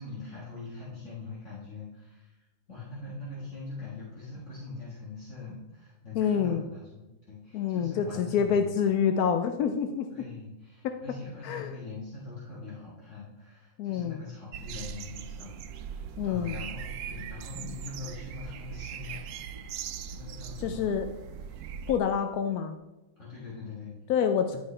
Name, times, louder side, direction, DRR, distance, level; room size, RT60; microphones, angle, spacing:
voice 1, 0.0-8.8 10.1-19.3 20.1-20.9 23.2-23.9 24.5-24.6, left 4 dB, 55° left, -7 dB, 2.0 m, -42 dB
voice 2, 6.1-6.6 7.5-10.3 10.8-10.9 11.4-11.7 13.8-14.2 16.2-16.6 20.6-21.1 21.9-22.8 24.1-24.6, left 7 dB, 85° left, 7 dB, 1.1 m, -27 dB
sound 1, 14.5-22.0, right 8 dB, 85° right, 1.1 m, -40 dB
11.0 x 5.6 x 3.3 m, 1.0 s
omnidirectional pair, 1.6 m